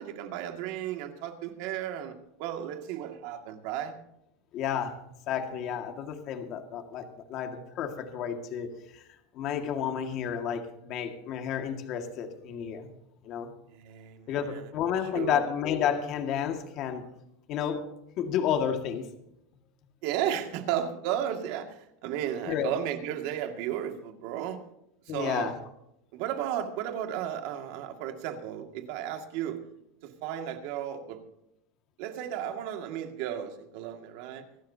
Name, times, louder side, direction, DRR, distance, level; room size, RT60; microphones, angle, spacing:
voice 1, 0.0-4.0 13.7-14.7 15.1-15.4 20.0-24.6 25.1-25.5 26.1-29.6 30.0-31.2 32.0-34.4, right 10 dB, 60° right, 5 dB, 2.2 m, -34 dB
voice 2, 4.5-5.0 5.3-8.7 8.9-9.0 9.3-12.9 13.2-13.5 14.3-17.0 17.5-17.8 18.2-19.1 22.5-22.7 25.1-25.5, left 8 dB, 45° left, 5 dB, 2.0 m, -31 dB
25.0 x 12.5 x 2.9 m, 0.81 s
supercardioid pair, 150°, 0 cm